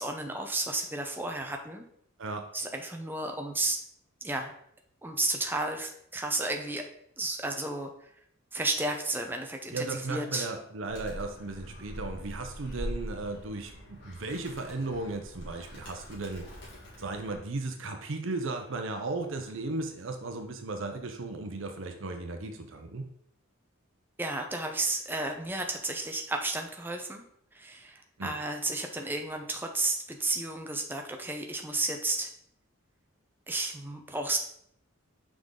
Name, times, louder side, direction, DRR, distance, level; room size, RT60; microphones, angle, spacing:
voice 1, 0.0-1.8 2.5-3.8 4.2-4.5 5.0-6.9 7.2-8.1 8.5-10.5 24.2-27.2 27.5-32.3 33.5-34.4, right 2 dB, 10° right, 3 dB, 0.7 m, -32 dB
voice 2, 2.2-2.5 9.7-16.4 17.0-23.1 28.2-28.3, right 3 dB, 65° right, 5 dB, 0.7 m, -36 dB
Animal, 10.9-17.4, equal, 55° left, 2.5 m, -43 dB
6.0 x 5.0 x 3.8 m, 0.70 s
head